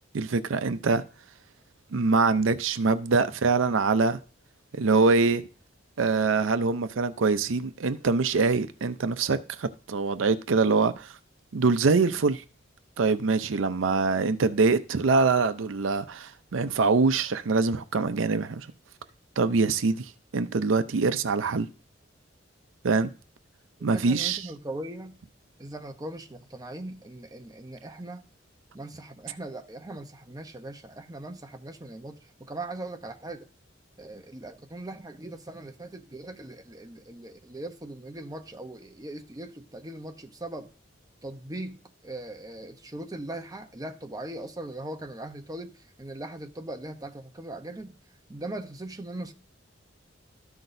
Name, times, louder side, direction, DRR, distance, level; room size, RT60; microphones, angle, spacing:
voice 1, 0.1-1.0 1.9-4.2 4.7-5.5 6.0-11.1 11.5-12.4 13.0-18.7 19.4-21.7 22.8-23.1 23.8-24.4, right 4 dB, 90° right, 0.6 m, -24 dB
voice 2, 23.9-25.2 25.6-28.3 28.7-33.5 34.0-40.7 41.2-48.0 48.3-49.3, right 1 dB, 20° right, 0.8 m, -40 dB
13.5 x 5.9 x 2.6 m
head